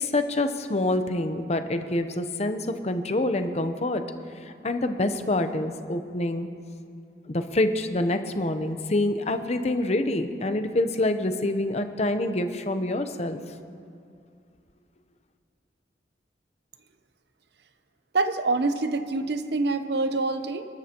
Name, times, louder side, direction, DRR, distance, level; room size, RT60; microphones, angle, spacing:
voice 1, 0.0-4.0 4.4-6.5 7.3-13.4, left 2 dB, 35° left, 8 dB, 0.8 m, -26 dB
voice 2, 18.1-20.7, right 3 dB, 65° right, 9 dB, 0.8 m, -26 dB
29.0 x 12.5 x 3.0 m, 2.4 s
head